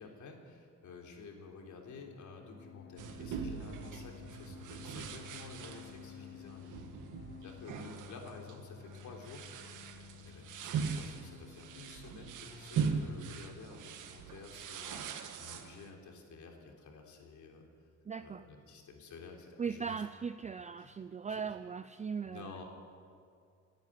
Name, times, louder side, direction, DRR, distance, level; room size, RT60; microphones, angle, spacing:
voice 1, 0.0-6.8 7.4-9.5 10.2-17.6 18.2-20.0 20.8-20.9 21.3-21.5 22.2-22.6, left 4 dB, 75° left, 2 dB, 3.5 m, -51 dB
sound 1, 1.9-13.6, left 8 dB, 35° left, 0.9 m, -53 dB
sound 2, 3.0-15.9, right 6 dB, 90° right, 1.7 m, -41 dB
voice 2, 18.0-18.5 19.6-22.6, right 6 dB, 25° right, 12 dB, 0.4 m, -39 dB
29.5 x 10.5 x 9.2 m, 2.3 s
cardioid pair, 145°, 30 cm